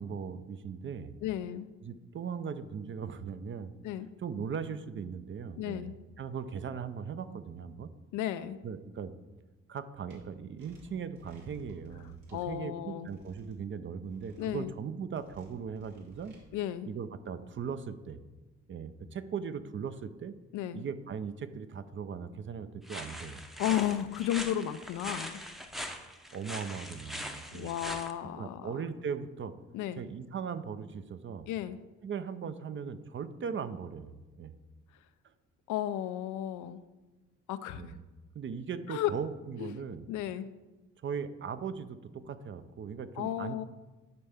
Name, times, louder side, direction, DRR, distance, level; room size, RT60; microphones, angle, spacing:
voice 1, 0.0-1.1 1.8-3.7 4.2-5.9 6.2-7.9 8.6-9.1 9.7-16.4 16.9-18.2 18.7-20.4 20.7-23.4 26.3-27.7 28.4-29.5 30.0-31.4 32.0-34.5 37.7-38.0 38.3-40.0 41.0-43.6, right 6 dB, 40° right, 12 dB, 0.5 m, -39 dB
voice 2, 1.2-1.7 3.8-4.1 5.6-5.9 8.1-8.6 12.3-13.1 14.4-14.7 16.5-16.9 20.5-20.8 23.6-25.4 27.5-28.7 29.7-30.0 31.5-31.8 35.7-36.8 37.5-37.9 38.9-39.1 39.6-39.8 40.1-40.5 43.2-43.6, left 12 dB, 85° left, 12 dB, 0.5 m, -33 dB
sound 1, 10.1-10.2 10.6-12.5 13.0-13.6 14.0-14.6 15.1-16.4, right 2 dB, 85° right, 1.9 m, -56 dB
sound 2, 22.9-28.1, equal, ahead, 0.6 m, -41 dB
10.5 x 4.3 x 3.5 m, 1.1 s
cardioid pair, 90°, 30 cm